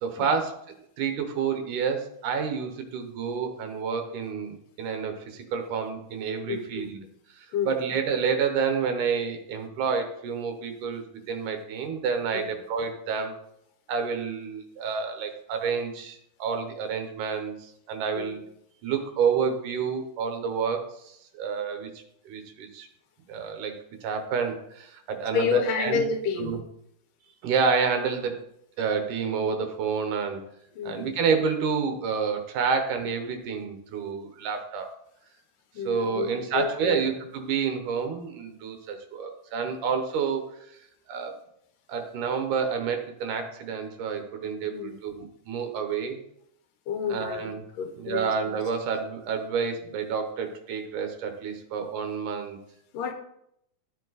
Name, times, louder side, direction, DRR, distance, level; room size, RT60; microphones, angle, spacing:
voice 1, 0.0-0.6 1.0-7.1 7.3-13.3 13.9-18.4 18.8-21.9 22.3-22.9 23.3-26.0 26.4-26.6 27.4-28.4 28.8-30.4 30.8-34.9 35.9-40.5 41.1-41.4 41.9-46.2 47.1-47.6 48.0-52.6, right 6 dB, 75° right, 6 dB, 2.6 m, -29 dB
voice 2, 6.5-6.9 7.5-7.8 12.3-12.5 18.2-18.4 25.3-26.6 30.8-31.2 35.7-37.1 44.7-45.0 46.9-47.5 47.8-48.3 52.9-53.1, left 5 dB, 90° left, 6 dB, 2.8 m, -30 dB
12.0 x 7.3 x 4.1 m, 0.76 s
omnidirectional pair, 3.7 m